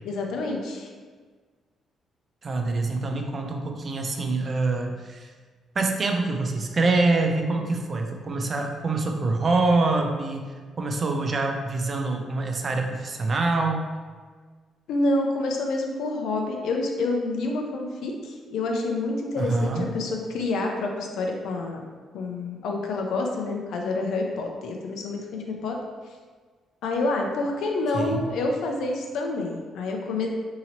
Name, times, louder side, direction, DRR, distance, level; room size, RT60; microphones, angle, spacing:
voice 1, 0.0-0.9 14.9-21.8 22.1-25.8 26.8-30.3, left 2 dB, 80° left, 1 dB, 0.5 m, -28 dB
voice 2, 2.4-5.3 5.7-13.9 19.4-19.9 27.9-28.3, right 3 dB, 40° right, 3 dB, 0.5 m, -25 dB
2.9 x 2.8 x 3.9 m, 1.5 s
cardioid pair, 90°, 0 cm